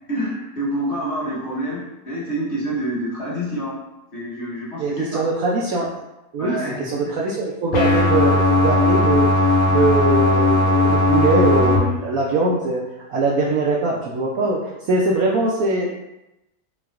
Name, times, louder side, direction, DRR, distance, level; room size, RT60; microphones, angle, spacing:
voice 1, 0.1-3.8 4.1-5.2 6.4-6.9, right 1 dB, 45° left, -7 dB, 1.3 m, -27 dB
voice 2, 4.8-5.9 6.3-12.8 13.1-15.9, right 2 dB, 65° right, -3 dB, 0.9 m, -22 dB
sound 1, 7.7-11.8, left 2 dB, 85° left, 1.4 m, -17 dB
5.0 x 3.4 x 2.4 m, 0.94 s
omnidirectional pair, 1.9 m